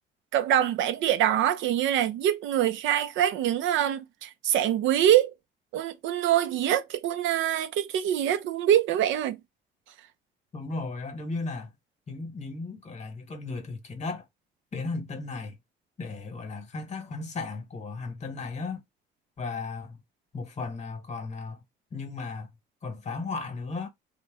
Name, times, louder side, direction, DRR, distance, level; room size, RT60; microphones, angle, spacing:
voice 1, 0.3-5.3 5.7-9.4, right 11 dB, 80° right, 0.5 m, -24 dB
voice 2, 10.5-11.7 12.1-14.2 14.7-15.6 16.0-18.8 19.4-20.0 20.3-21.6 21.9-22.5 22.8-23.9, left 3 dB, 35° left, 1.0 m, -35 dB
2.7 x 2.1 x 3.3 m
cardioid pair, 100°, 19 cm